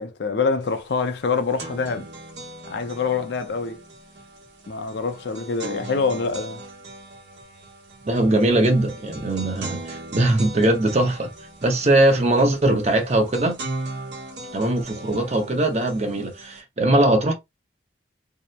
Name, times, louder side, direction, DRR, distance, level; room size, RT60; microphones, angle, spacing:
voice 1, 0.0-2.1 2.7-3.8 4.7-6.6, left 4 dB, 65° left, 0.4 m, -25 dB
sound 1, 0.7-0.8 1.1-16.6, right 2 dB, 70° right, 0.9 m, -39 dB
voice 2, 8.1-11.3 11.6-13.6 14.5-17.3, right 1 dB, 35° right, 0.6 m, -20 dB
2.8 x 2.0 x 2.3 m
head